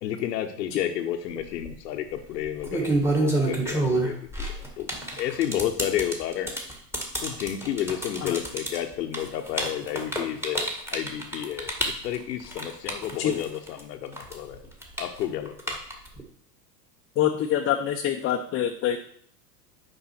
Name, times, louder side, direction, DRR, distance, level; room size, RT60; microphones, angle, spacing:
voice 1, 0.0-6.6 7.2-14.6 15.0-15.8, left 11 dB, 75° left, 4 dB, 0.9 m, -31 dB
sound 1, 1.3-1.7 2.4-13.8 14.1-16.2, right 2 dB, 5° right, 1.6 m, -28 dB
voice 2, 17.2-19.0, left 10 dB, 25° left, 4 dB, 0.6 m, -25 dB
7.8 x 5.5 x 4.4 m, 0.62 s
hypercardioid pair, 90°, 50 cm